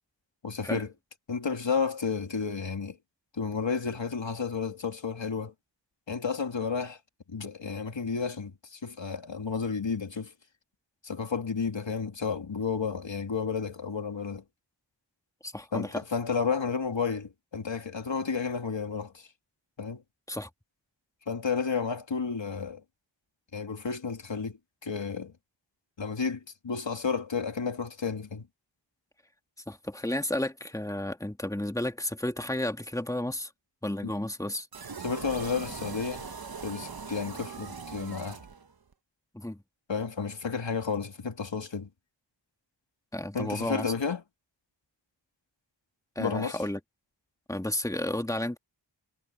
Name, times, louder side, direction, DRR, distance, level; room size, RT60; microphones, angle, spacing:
voice 1, 0.4-0.9 1.3-3.0 3.3-5.5 6.1-7.0 7.3-10.3 11.0-14.4 15.7-19.3 19.8-20.0 21.3-22.8 23.5-25.3 26.0-28.5 34.0-34.1 35.0-36.2 36.6-38.4 39.9-41.9 43.3-44.2 46.2-46.6, left 5 dB, 85° left, 2.4 m, -32 dB
voice 2, 15.4-16.0 20.3-20.5 29.7-33.5 33.8-34.7 39.3-39.6 43.1-43.9 46.2-46.8 47.5-48.6, left 1 dB, 5° left, 2.0 m, -32 dB
sound 1, 34.7-38.9, right 5 dB, 55° right, 1.1 m, -41 dB
wide cardioid pair, 50°, 44 cm